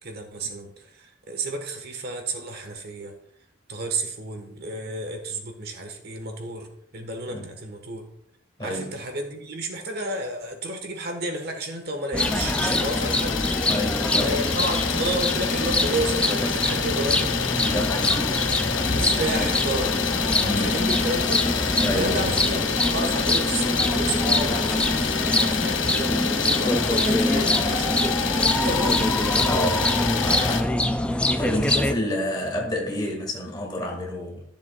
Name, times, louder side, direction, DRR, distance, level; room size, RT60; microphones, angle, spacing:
voice 1, 0.0-3.1 3.7-6.7 6.9-8.1 8.6-13.4 14.2-17.3 18.9-20.0 20.6-21.4 21.9-28.2 28.5-29.1, right 2 dB, 55° right, 4 dB, 1.2 m, -31 dB
voice 2, 8.6-8.9 13.7-14.4 17.6-18.4 19.3-19.5 20.4-20.8 21.8-22.3 29.4-30.8 31.4-34.4, left 1 dB, 20° left, 1 dB, 1.7 m, -29 dB
sound 1, 12.1-32.0, left 1 dB, 5° left, 0.3 m, -24 dB
Idling, 12.2-30.6, left 6 dB, 80° left, 0.8 m, -27 dB
14.0 x 7.0 x 2.3 m, 0.74 s
head